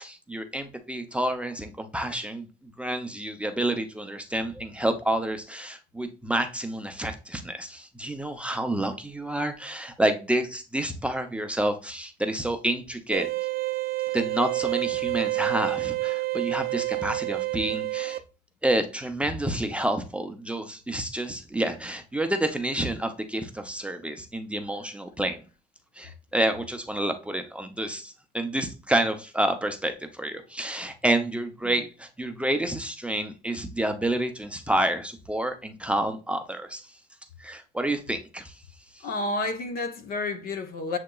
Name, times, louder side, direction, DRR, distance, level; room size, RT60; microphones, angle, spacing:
voice 1, 0.0-2.5 2.8-13.3 14.1-18.2 18.6-25.4 26.0-36.9 37.4-38.5 39.0-39.1, right 1 dB, 5° right, 0.5 m, -29 dB
sound 1, 13.1-18.2, right 21 dB, 65° right, 0.5 m, -28 dB
voice 2, 39.0-41.0, left 2 dB, 60° left, 0.8 m, -30 dB
7.5 x 2.8 x 2.3 m
cardioid pair, 110°, 17 cm